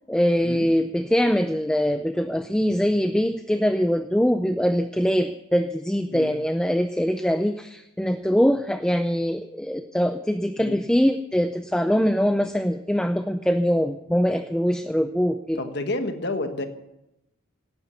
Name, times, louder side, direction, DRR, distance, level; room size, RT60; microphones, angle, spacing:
voice 1, 0.1-15.6, equal, 5° left, 8 dB, 0.4 m, -23 dB
voice 2, 15.6-16.6, left 2 dB, 50° left, 7 dB, 1.4 m, -29 dB
17.5 x 9.5 x 6.9 m, 0.89 s
head